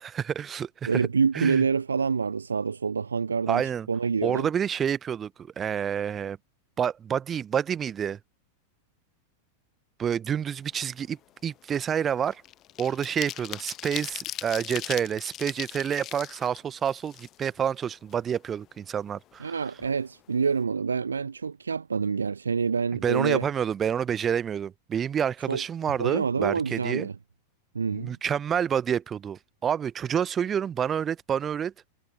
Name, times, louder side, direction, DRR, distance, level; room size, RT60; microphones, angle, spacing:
voice 1, 0.0-1.1 1.3-1.6 3.5-3.9 4.2-6.4 6.8-8.2 10.0-12.4 12.8-19.5 23.0-27.1 27.9-31.7, right 8 dB, 25° right, 0.7 m, -28 dB
voice 2, 0.8-4.5 19.4-23.5 25.5-25.6 26.0-27.1 27.7-28.1, right 5 dB, 75° right, 0.5 m, -27 dB
sound 1, 10.7-11.0 11.3-17.7 18.1-18.2 18.5-19.5 19.8-19.9 20.2-20.5, left 13 dB, 35° left, 0.9 m, -39 dB
figure-of-eight pair, 90°, 0 cm